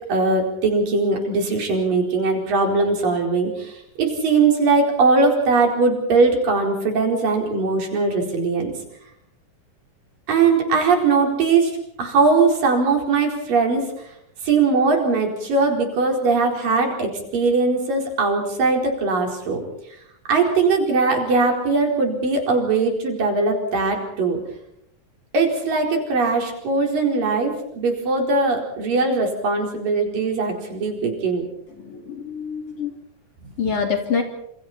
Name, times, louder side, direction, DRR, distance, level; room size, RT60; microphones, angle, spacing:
voice 1, 0.1-8.7 10.3-13.9 14.4-19.6 20.3-24.4 25.3-31.4, right 4 dB, 80° right, 2 dB, 6.2 m, -20 dB
voice 2, 31.7-33.0 33.6-34.2, left 6 dB, 45° left, 4 dB, 3.7 m, -26 dB
28.5 x 27.5 x 4.4 m, 0.75 s
omnidirectional pair, 3.9 m